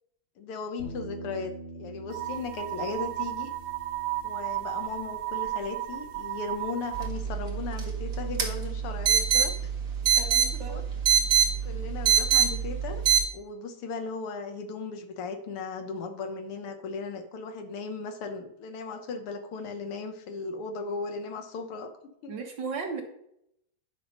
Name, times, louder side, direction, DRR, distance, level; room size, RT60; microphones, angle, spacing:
voice 1, 0.4-3.5 4.2-9.7 10.5-10.8 11.6-13.0 13.3-21.9 22.2-22.3, left 4 dB, 80° left, 6 dB, 2.0 m, -37 dB
Bass guitar, 0.8-7.0, right 1 dB, 60° left, 2.9 m, -46 dB
sound 1, 2.1-7.1, right 15 dB, 85° right, 1.9 m, -34 dB
sound 2, 6.9-13.2, right 8 dB, 45° right, 1.7 m, -25 dB
voice 2, 10.2-10.8 22.3-23.0, right 5 dB, 60° right, 3 dB, 1.8 m, -35 dB
10.0 x 5.8 x 5.2 m, 0.76 s
omnidirectional pair, 2.4 m